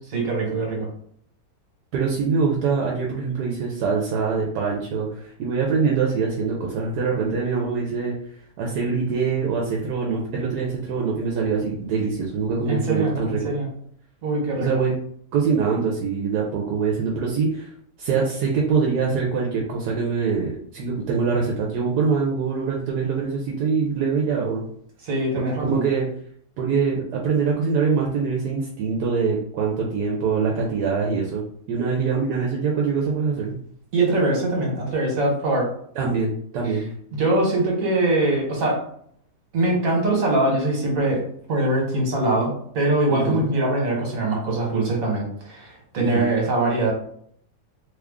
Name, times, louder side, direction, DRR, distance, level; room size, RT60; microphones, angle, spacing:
voice 1, 0.1-0.9 12.7-13.7 14.2-14.7 25.0-25.8 33.9-35.7 36.6-36.8 37.1-38.8 39.5-41.2 41.5-46.9, right 2 dB, 55° right, -2 dB, 1.5 m, -22 dB
voice 2, 1.9-8.2 8.6-13.5 14.6-14.9 15.3-17.7 18.0-24.6 25.4-26.0 26.6-31.4 31.7-33.5 36.0-36.9 43.1-43.5 46.0-46.3, right 5 dB, 80° right, -2 dB, 1.2 m, -24 dB
3.1 x 2.3 x 3.5 m, 0.64 s
omnidirectional pair, 1.8 m